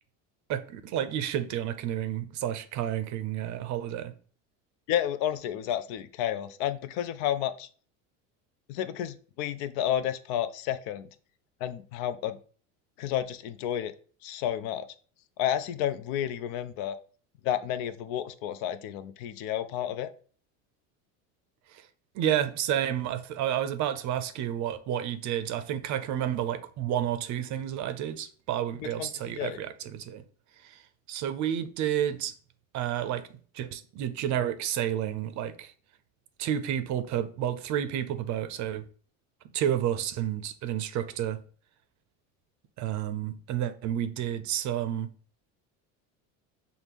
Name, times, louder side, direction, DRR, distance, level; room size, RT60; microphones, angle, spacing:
voice 1, 0.5-4.1 21.7-21.8 22.1-30.2 30.6-30.8 31.1-32.3 32.7-33.3 33.5-35.7 36.4-38.8 39.5-41.4 42.8-45.1, right 10 dB, 45° right, 0.5 m, -30 dB
voice 2, 4.9-7.7 8.7-11.1 11.6-12.4 13.0-13.9 14.2-14.9 15.4-17.0 17.4-20.1 28.8-29.6, left 10 dB, 65° left, 0.5 m, -31 dB
5.8 x 2.0 x 3.5 m
supercardioid pair, 100°, 39 cm